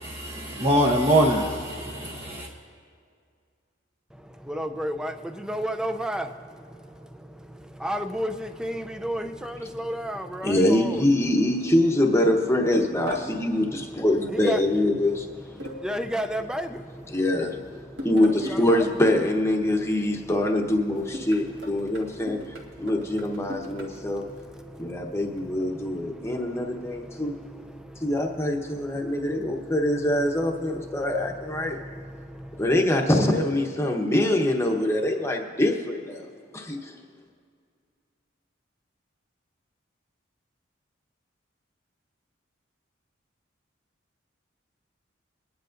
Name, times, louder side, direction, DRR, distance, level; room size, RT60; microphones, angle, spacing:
voice 1, 0.0-2.5, right 1 dB, 30° right, 0.8 m, -23 dB
voice 2, 4.1-11.1 13.3-14.7 15.6-18.9 19.6-20.3 20.9-29.8 30.5-32.7, equal, 5° right, 0.4 m, -36 dB
voice 3, 10.4-15.1 17.1-17.6 17.9-22.4 22.8-24.3 24.8-27.3 28.0-31.8 32.6-36.9, left 1 dB, 15° left, 0.9 m, -24 dB
sound 1, 13.1-13.3 15.6-16.0 18.0-18.9 21.1-24.0, equal, 60° right, 1.8 m, -38 dB
24.0 x 10.5 x 2.6 m
head